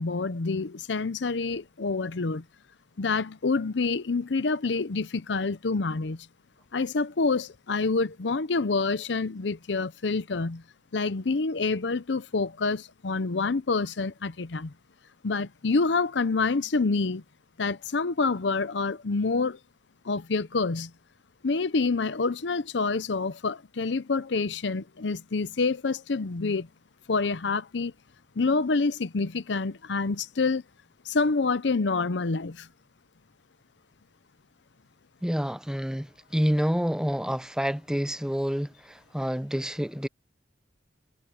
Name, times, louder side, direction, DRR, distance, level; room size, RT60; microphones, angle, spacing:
voice 1, 0.0-2.4 3.0-6.3 6.7-10.6 10.9-14.7 15.2-17.2 17.6-19.6 20.0-20.9 21.4-26.7 27.1-27.9 28.4-30.6 31.0-32.7, left 4 dB, 70° left, 0.7 m, -27 dB
voice 2, 35.2-40.1, equal, 5° right, 0.7 m, -28 dB
head